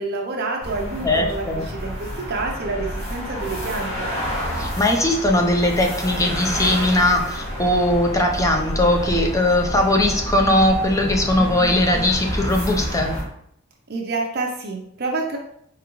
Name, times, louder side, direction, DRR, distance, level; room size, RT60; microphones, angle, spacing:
voice 1, 0.0-4.1 13.9-15.4, right 3 dB, 45° right, 1 dB, 0.6 m, -28 dB
sound 1, 0.6-13.2, equal, 30° left, 1.7 m, -29 dB
voice 2, 1.0-1.7 4.6-13.2, left 1 dB, 15° left, 2 dB, 0.5 m, -19 dB
4.6 x 3.7 x 3.0 m, 0.72 s
head